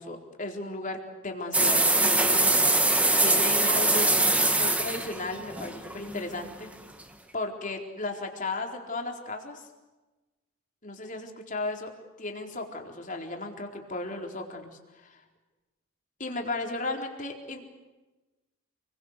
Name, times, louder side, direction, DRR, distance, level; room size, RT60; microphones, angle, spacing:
voice 1, 0.0-2.6 3.2-4.1 4.5-6.7 7.3-9.7 10.8-11.9 12.2-15.2 16.2-17.6, left 2 dB, 35° left, 3 dB, 4.1 m, -35 dB
sound 1, 1.5-6.5, right 2 dB, 5° right, 2.0 m, -23 dB
29.5 x 22.5 x 8.2 m, 1.1 s
head